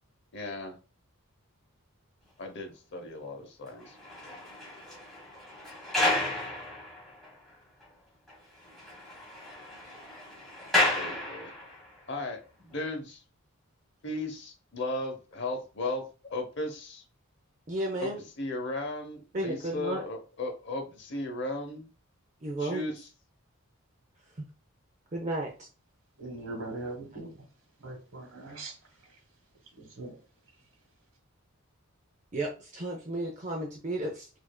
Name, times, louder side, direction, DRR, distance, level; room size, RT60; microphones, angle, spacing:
voice 1, 0.3-0.8 2.4-4.0 4.3-4.4 10.9-11.5 12.1-12.4 12.7-13.2 14.0-17.0 18.0-21.9 22.6-23.1, left 2 dB, 50° left, 0.8 m, -36 dB
sound 1, 3.8-7.5 7.8-7.9 8.3-8.4 8.6-11.9 12.6-12.8, left 2 dB, ahead, 1.3 m, -32 dB
voice 2, 17.7-18.2 19.3-20.0 22.4-22.8 25.1-25.7 32.3-34.3, right 1 dB, 35° right, 0.5 m, -33 dB
voice 3, 26.2-27.3 27.8-28.7 29.8-30.2, right 2 dB, 60° right, 1.2 m, -40 dB
5.0 x 2.5 x 2.2 m
head